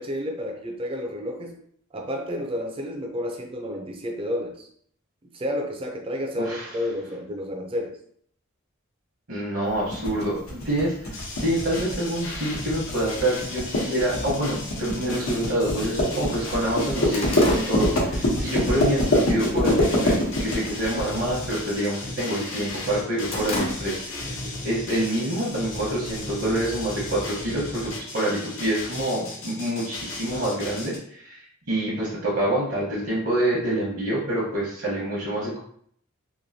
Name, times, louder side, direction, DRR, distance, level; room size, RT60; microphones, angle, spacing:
voice 1, 0.0-1.6 1.9-4.7 5.3-8.0 24.2-24.6, left 1 dB, 25° right, 2 dB, 0.5 m, -31 dB
voice 2, 6.4-6.8 9.3-35.6, right 1 dB, 65° right, -6 dB, 1.0 m, -27 dB
sound 1, 9.9-21.5, left 1 dB, 85° left, 0.9 m, -24 dB
sound 2, 11.1-31.0, left 2 dB, 65° left, 0.7 m, -36 dB
sound 3, 17.1-18.7 19.1-19.4 19.8-20.3 20.6-20.9 21.2-22.4 22.8-24.3 24.6-24.8 25.7-26.5, left 1 dB, 30° left, 0.5 m, -34 dB
3.0 x 2.6 x 2.7 m, 0.63 s
head